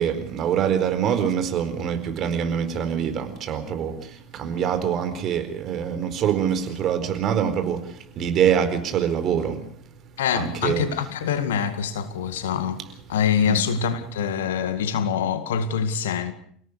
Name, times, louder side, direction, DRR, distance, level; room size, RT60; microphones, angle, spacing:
voice 1, 0.0-9.6 10.3-10.8 13.5-13.6, right 8 dB, 45° right, 4.4 m, -24 dB
voice 2, 10.2-12.8 13.1-16.3, left 7 dB, 70° left, 2.1 m, -25 dB
28.5 x 17.5 x 6.4 m
figure-of-eight pair, 75°, 0 cm